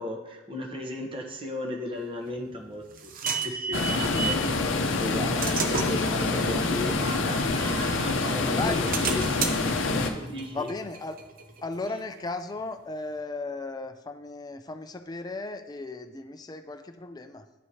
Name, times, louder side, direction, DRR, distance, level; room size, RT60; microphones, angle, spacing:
voice 1, 0.0-4.4 5.0-9.6 10.2-10.7, left 1 dB, 25° right, 2 dB, 0.9 m, -36 dB
sound 1, 2.3-4.5 5.0-8.1 8.5-12.0, right 5 dB, 45° right, 0.6 m, -34 dB
sound 2, 3.7-10.1, left 3 dB, 70° left, 0.7 m, -26 dB
voice 2, 8.5-8.9 10.5-11.2 11.6-17.5, left 3 dB, 20° left, 8 dB, 0.4 m, -35 dB
11.0 x 4.7 x 2.8 m, 1.0 s
head